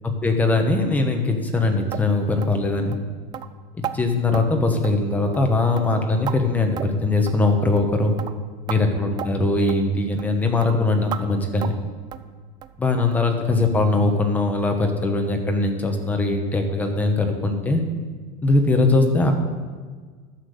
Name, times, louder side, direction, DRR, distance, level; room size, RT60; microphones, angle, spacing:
voice 1, 0.0-3.0 3.7-8.2 8.7-11.8 12.8-17.8 18.4-19.3, left 2 dB, 10° left, 4 dB, 1.1 m, -21 dB
sound 1, 1.9-2.1 2.4-2.6 2.9-3.0 3.3-3.5 3.8-4.0 4.3-4.5 4.8-5.1 5.3-5.5 5.8-6.4 6.8-7.0 7.3-7.4 7.8-7.9 8.2-8.3 8.7-8.8 9.2-9.3 9.7-9.8 10.2-10.3 10.6-10.7 11.1-11.2 11.6-11.8 12.1-12.3 12.6-12.8 13.1-13.2 13.6-13.7 14.1-14.2, right 10 dB, 25° right, 0.4 m, -33 dB
12.0 x 7.4 x 6.6 m, 1.5 s
cardioid pair, 175°, 19 cm